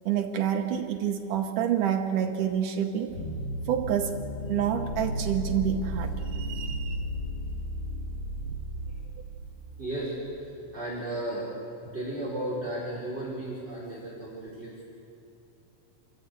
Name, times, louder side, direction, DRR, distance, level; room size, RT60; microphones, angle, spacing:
voice 1, 0.1-3.1 3.7-4.1 4.5-7.1, right 9 dB, 75° right, 5 dB, 1.9 m, -28 dB
sound 1, 3.1-10.3, equal, 40° left, 1.7 m, -34 dB
voice 2, 9.8-11.6 11.9-14.8, right 1 dB, 15° right, -6 dB, 3.9 m, -34 dB
27.0 x 14.0 x 8.2 m, 2.6 s
omnidirectional pair, 4.9 m